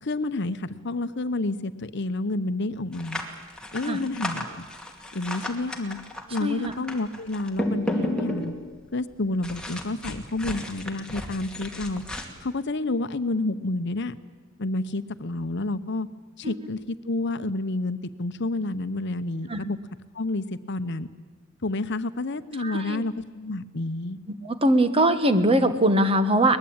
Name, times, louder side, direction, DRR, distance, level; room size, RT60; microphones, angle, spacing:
voice 1, 0.0-3.3 3.7-4.7 5.1-6.0 6.3-8.5 8.9-12.0 12.4-14.1 14.6-16.1 16.4-19.8 20.1-21.1 21.6-24.2, left 2 dB, 60° left, 12 dB, 0.9 m, -29 dB
sound 1, 2.9-8.8 9.4-12.2, left 1 dB, 5° left, 2.3 m, -33 dB
voice 2, 6.4-6.7 16.4-16.7 19.5-19.6 22.6-23.0 24.4-26.6, right 1 dB, 30° right, 9 dB, 1.4 m, -22 dB
23.0 x 20.5 x 8.8 m, 1.3 s
head